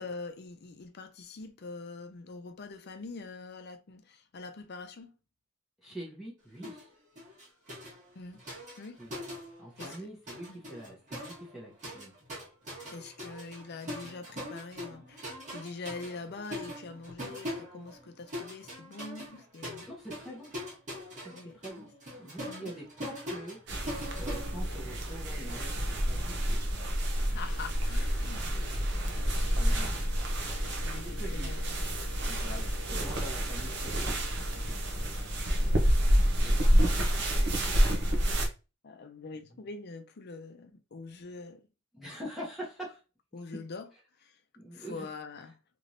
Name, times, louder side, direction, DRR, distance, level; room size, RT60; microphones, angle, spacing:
voice 1, 0.0-5.1 8.1-8.4 8.8-9.0 9.8-10.0 10.5-10.6 12.9-19.9 21.3-21.6 22.4-22.7 27.3-28.9 30.6-31.1 31.3-31.6 32.3-32.5 35.7-35.8 36.5-36.9 38.8-41.7 43.3-43.9 44.2-44.4 44.7-45.5, left 3 dB, 50° left, 0.5 m, -44 dB
voice 2, 5.8-6.9 9.0-9.1 9.6-12.1 19.2-19.3 19.9-20.5 21.1-21.9 22.2-26.8 28.4-28.6 29.5-30.0 31.2-31.5 32.3-35.2 36.4-36.9 37.2-37.8 39.5-39.6 41.9-43.0 44.6-45.1, right 1 dB, ahead, 0.9 m, -45 dB
sound 1, 6.6-6.9 7.2-10.0 10.3-25.2, equal, 35° right, 1.5 m, -42 dB
sound 2, 23.7-38.5, equal, 55° right, 0.8 m, -28 dB
3.3 x 3.0 x 2.6 m
head